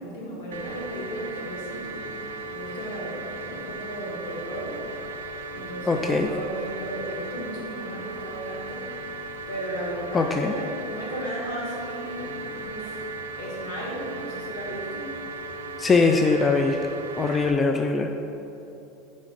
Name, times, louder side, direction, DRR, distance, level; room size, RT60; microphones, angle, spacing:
voice 1, 0.0-2.1 2.5-4.8 5.5-8.9 9.5-13.0 13.3-15.1, equal, 70° left, -4 dB, 1.4 m, -35 dB
sound 1, 0.5-17.5, right 2 dB, 75° right, 0.3 m, -37 dB
voice 2, 5.9-6.3 10.1-10.5 15.8-16.8 17.2-18.1, left 4 dB, 25° left, 4 dB, 0.3 m, -21 dB
4.7 x 4.2 x 5.1 m, 3.0 s
hypercardioid pair, 80°, 0 cm